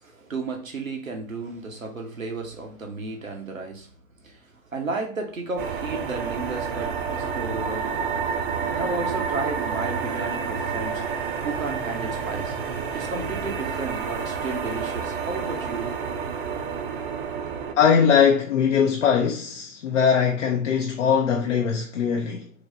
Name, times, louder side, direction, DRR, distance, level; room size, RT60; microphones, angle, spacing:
voice 1, 0.0-3.9 4.2-8.0 8.7-11.0 11.4-12.5 12.9-16.0, right 3 dB, 90° right, 0.8 m, -33 dB
sound 1, 5.6-17.7, right 6 dB, 45° right, 0.5 m, -29 dB
voice 2, 17.8-22.5, left 7 dB, 65° left, 0.6 m, -21 dB
3.1 x 3.0 x 2.6 m
figure-of-eight pair, 100°, 39 cm